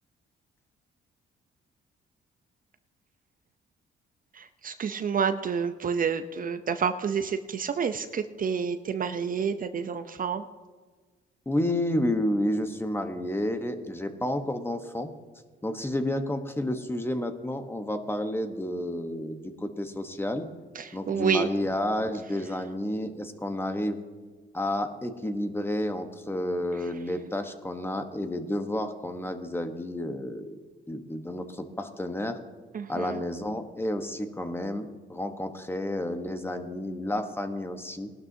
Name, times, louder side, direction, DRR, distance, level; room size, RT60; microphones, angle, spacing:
voice 1, 4.3-10.4 20.7-21.5 32.7-33.2, right 6 dB, 45° right, 9 dB, 0.6 m, -29 dB
voice 2, 11.5-15.1 15.6-20.5 20.9-24.0 24.5-30.6 30.9-32.4 32.9-38.1, left 1 dB, 10° left, 7 dB, 1.1 m, -30 dB
19.0 x 12.0 x 2.7 m, 1.4 s
cardioid pair, 90°, 20 cm